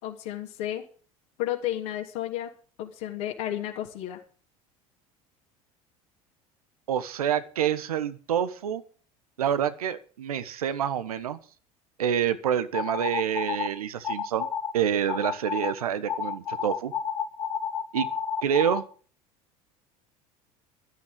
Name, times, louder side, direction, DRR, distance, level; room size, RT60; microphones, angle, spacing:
voice 1, 0.0-0.9 1.4-2.5 2.8-4.2, left 12 dB, 65° left, 0 dB, 3.1 m, -32 dB
voice 2, 6.9-8.8 9.4-11.4 12.0-14.5 14.7-16.9 17.9-18.1 18.4-18.8, right 9 dB, 80° right, 12 dB, 1.3 m, -27 dB
sound 1, 12.7-13.7 14.0-14.7 15.1-15.7 16.1-18.8, left 7 dB, 90° left, 3.9 m, -30 dB
14.5 x 12.5 x 5.3 m, 0.40 s
hypercardioid pair, 70°, 19 cm